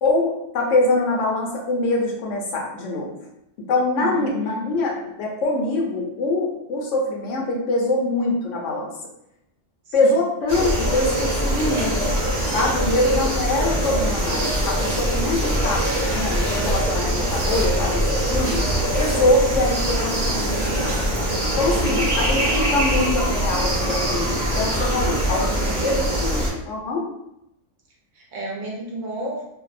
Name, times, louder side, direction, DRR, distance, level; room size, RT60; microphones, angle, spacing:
voice 1, 0.0-3.1 3.7-8.9 9.9-12.1 12.5-18.6 18.9-21.0 21.6-25.5 25.8-27.1, left 2 dB, 70° left, -1 dB, 0.9 m, -24 dB
voice 2, 4.0-4.7 9.9-10.2 21.7-22.1 25.3-26.3 28.1-29.5, right 1 dB, 70° right, -2 dB, 0.9 m, -33 dB
sound 1, 10.5-26.5, right 1 dB, 40° right, 0.3 m, -23 dB
2.6 x 2.0 x 2.4 m, 0.82 s
omnidirectional pair, 1.4 m